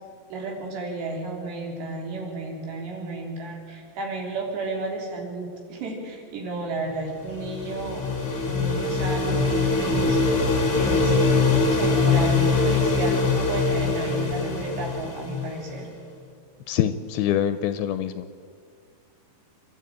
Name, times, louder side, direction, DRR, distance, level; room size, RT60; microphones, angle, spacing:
voice 1, 0.3-8.0 8.5-10.2 10.8-11.3 11.6-15.9, right 3 dB, 80° right, 0 dB, 5.5 m, -33 dB
sound 1, 7.0-15.8, left 3 dB, 30° left, 1.9 m, -23 dB
voice 2, 16.7-18.3, left 10 dB, 80° left, 11 dB, 2.4 m, -25 dB
27.5 x 12.5 x 8.9 m, 2.1 s
omnidirectional pair, 4.9 m